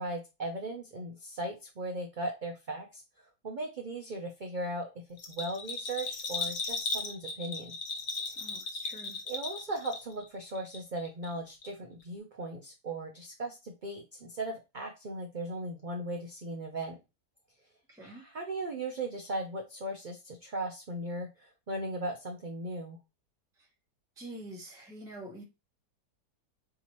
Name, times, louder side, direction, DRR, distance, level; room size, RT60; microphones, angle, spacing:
voice 1, 0.0-3.0 3.4-4.9 5.3-7.7 9.3-17.0 18.0-23.0, right 1 dB, 55° right, 0.5 m, -37 dB
Bell, 5.2-10.3 10.5-11.3 11.6-11.7, left 3 dB, 60° left, 1.2 m, -36 dB
voice 2, 8.3-9.2 17.9-18.2 23.6-23.7 24.2-25.4, right 1 dB, 5° right, 0.6 m, -46 dB
4.2 x 3.6 x 3.0 m
omnidirectional pair, 1.8 m